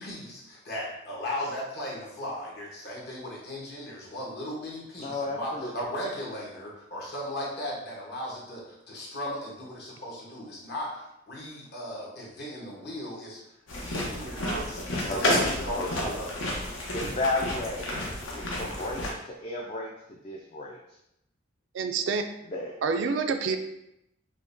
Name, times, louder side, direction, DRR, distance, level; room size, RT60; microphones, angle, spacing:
voice 1, 0.0-13.4 13.7-16.3 16.6-16.7, left 1 dB, 50° left, -4 dB, 1.0 m, -37 dB
voice 2, 5.0-5.7 15.0-15.4 15.7-16.1 16.9-21.0 22.5-22.8, left 2 dB, 30° left, -2 dB, 0.3 m, -33 dB
sound 1, 13.7-19.1, left 1 dB, 75° left, 0.8 m, -31 dB
voice 3, 14.2-14.6 21.7-22.2 22.8-23.6, right 5 dB, 65° right, 7 dB, 0.3 m, -28 dB
4.9 x 2.1 x 2.6 m, 0.84 s
head